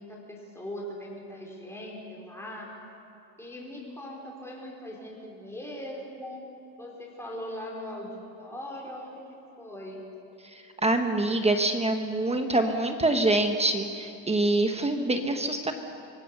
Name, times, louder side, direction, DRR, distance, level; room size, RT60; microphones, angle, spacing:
voice 1, 0.0-2.7 3.4-6.4 6.8-9.2 9.6-10.0, left 1 dB, 5° left, -2 dB, 4.5 m, -40 dB
voice 2, 10.5-15.7, right 2 dB, 15° right, 5 dB, 1.2 m, -25 dB
25.5 x 23.5 x 6.8 m, 2.8 s
cardioid pair, 160°, 44 cm